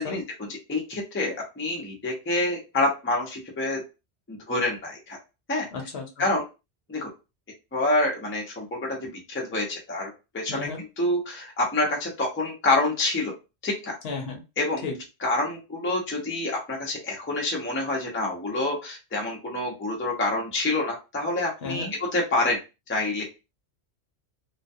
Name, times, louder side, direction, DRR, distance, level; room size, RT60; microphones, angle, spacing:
voice 1, 0.0-3.8 4.3-5.2 5.5-5.7 6.2-6.4 6.9-7.1 7.7-13.3 13.6-14.0 14.6-14.8 15.2-21.9 22.1-22.6 22.9-23.2, left 2 dB, 15° left, -1 dB, 0.5 m, -27 dB
voice 2, 5.7-6.3 10.5-10.8 14.0-14.4 14.8-15.0 21.6-21.9, left 4 dB, 65° left, 3 dB, 0.9 m, -33 dB
2.3 x 2.2 x 2.6 m, 0.28 s
omnidirectional pair, 1.2 m